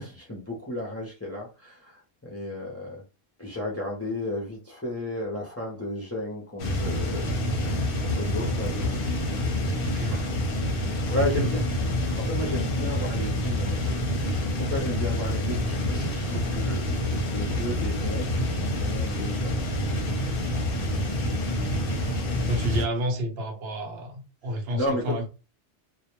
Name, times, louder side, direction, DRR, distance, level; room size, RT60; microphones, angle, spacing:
voice 1, 0.0-3.0 3.4-9.0 10.1-10.3 11.1-11.7 12.1-13.8 14.2-19.6 24.7-25.2, left 1 dB, 20° left, 0.4 m, -33 dB
sound 1, 6.6-22.9, left 1 dB, 60° left, 0.7 m, -27 dB
voice 2, 9.8-10.2 11.2-11.5 22.5-25.3, equal, 70° right, 0.8 m, -30 dB
2.2 x 2.1 x 2.9 m
omnidirectional pair, 1.1 m